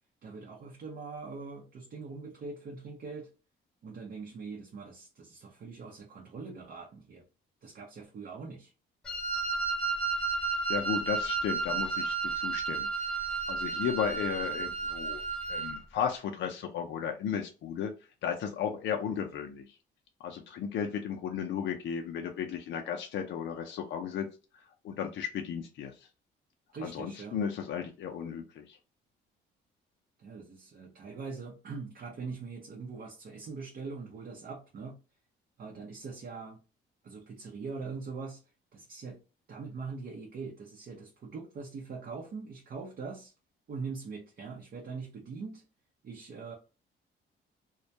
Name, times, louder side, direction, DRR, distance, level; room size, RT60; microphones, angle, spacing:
voice 1, 0.2-3.3 3.8-7.2 7.6-8.7 26.7-27.4 30.2-35.0 35.6-36.6 37.0-38.4 38.7-39.2 39.5-43.3 43.7-45.6 46.0-46.5, right 4 dB, 50° right, -1 dB, 0.6 m, -42 dB
Wind instrument woodwind instrument, 9.0-15.8, right 4 dB, 5° left, 0.8 m, -32 dB
voice 2, 10.7-12.9 13.5-15.2 15.5-17.9 18.2-19.6 20.2-24.3 24.8-25.9 26.8-28.8, left 8 dB, 65° left, 4 dB, 0.5 m, -34 dB
2.2 x 2.1 x 2.7 m, 0.33 s
cardioid pair, 90°, 20 cm